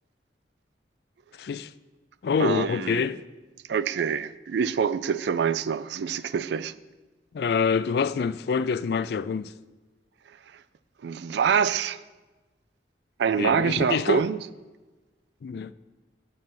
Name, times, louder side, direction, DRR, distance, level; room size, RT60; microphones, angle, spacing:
voice 1, 1.4-1.7 2.2-3.2 7.3-9.5 13.4-14.2 15.4-15.7, left 6 dB, 55° left, 0.3 m, -26 dB
voice 2, 2.4-3.0 3.7-6.7 10.3-10.6 11.0-12.0 13.2-14.4, right 7 dB, 65° right, 0.3 m, -26 dB
7.4 x 6.3 x 5.9 m
head